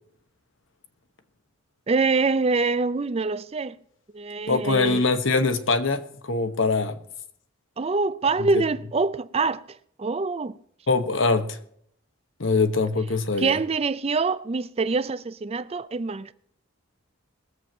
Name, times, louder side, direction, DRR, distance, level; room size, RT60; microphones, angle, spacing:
voice 1, 1.9-3.8 4.1-5.0 7.8-9.6 10.0-10.6 13.4-16.3, right 4 dB, 30° right, 0.4 m, -25 dB
voice 2, 4.5-7.0 8.5-8.6 10.9-11.6 12.4-13.6, left 3 dB, 65° left, 1.2 m, -23 dB
21.0 x 7.7 x 4.3 m
head